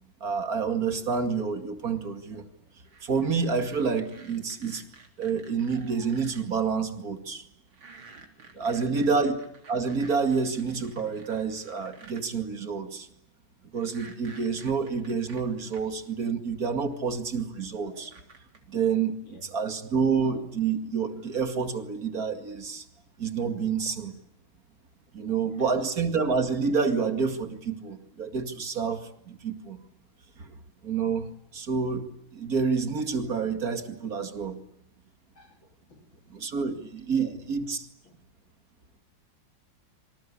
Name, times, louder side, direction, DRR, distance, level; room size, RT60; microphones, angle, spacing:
voice 1, 0.2-2.5 3.0-4.9 5.2-7.4 8.5-9.4 9.7-13.1 13.7-18.1 18.7-22.8 23.2-24.1 25.1-29.8 30.4-30.5 30.8-31.3 31.5-34.6 36.3-37.9, right 5 dB, 45° right, 2.6 m, -28 dB
sound 1, 2.8-6.4 7.7-12.2 13.7-15.8 16.9-17.0 17.9-18.6, right 3 dB, 80° right, 4.5 m, -52 dB
voice 2, 8.5-9.1 19.2-19.5 25.6-25.7 35.3-36.2 37.2-37.4 38.0-38.2, left 3 dB, 70° left, 4.6 m, -50 dB
27.0 x 25.5 x 8.6 m
omnidirectional pair, 2.2 m